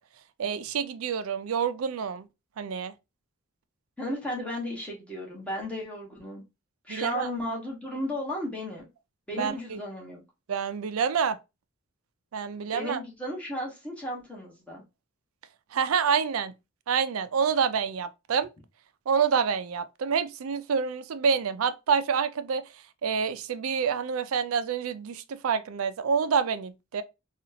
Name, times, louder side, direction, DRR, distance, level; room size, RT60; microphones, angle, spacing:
voice 1, 0.4-2.3 2.6-2.9 6.9-7.3 9.4-9.8 10.5-11.4 12.3-13.0 15.7-16.5 16.9-18.5 19.1-22.6 23.0-27.0, right 6 dB, 80° right, 0.4 m, -27 dB
voice 2, 4.0-6.4 6.9-8.9 9.3-10.2 12.7-14.8, equal, 5° left, 1.3 m, -34 dB
4.0 x 2.4 x 2.7 m
head